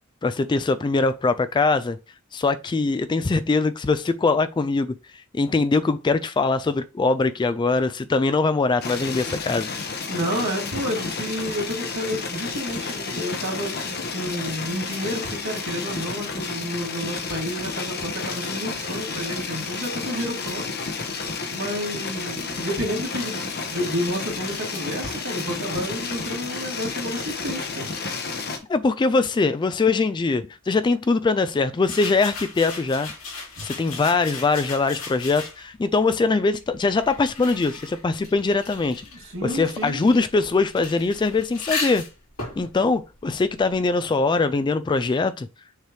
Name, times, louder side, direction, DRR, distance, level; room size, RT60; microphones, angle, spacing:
voice 1, 0.2-2.0 2.3-4.9 5.3-9.7 28.7-33.1 33.6-39.0 39.4-42.1 42.6-45.5, left 3 dB, 20° left, 0.3 m, -22 dB
sound 1, 8.8-28.6, left 4 dB, 50° left, 1.1 m, -31 dB
voice 2, 10.1-20.7 21.5-27.9 39.1-40.0, equal, 65° right, 2.5 m, -30 dB
sound 2, 31.8-35.8 36.6-44.0, left 4 dB, 85° left, 3.2 m, -36 dB
6.5 x 3.3 x 4.6 m
head